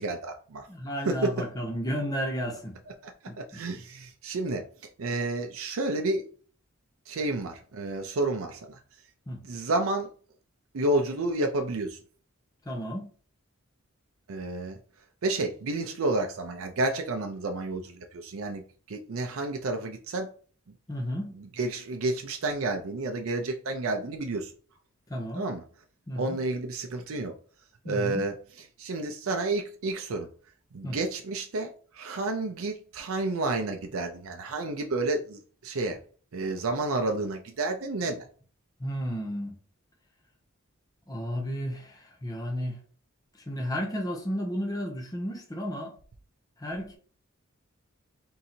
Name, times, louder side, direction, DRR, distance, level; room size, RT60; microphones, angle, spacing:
voice 1, 0.0-0.7 1.1-1.3 3.4-4.7 5.0-6.2 7.1-8.8 9.4-10.1 10.7-12.0 14.3-14.8 15.2-20.3 21.4-24.5 25.4-25.6 26.2-27.3 27.8-28.3 28.8-30.3 30.7-36.0 36.3-38.3, right 2 dB, 70° right, 0.5 m, -30 dB
voice 2, 0.7-2.7 3.3-3.6 9.3-9.4 12.6-13.1 20.9-21.3 25.1-25.5 26.1-26.4 27.8-28.2 30.8-31.0 38.8-39.6 41.1-42.8 43.3-45.9 46.6-47.0, equal, 15° left, 0.7 m, -33 dB
3.8 x 2.7 x 4.2 m
head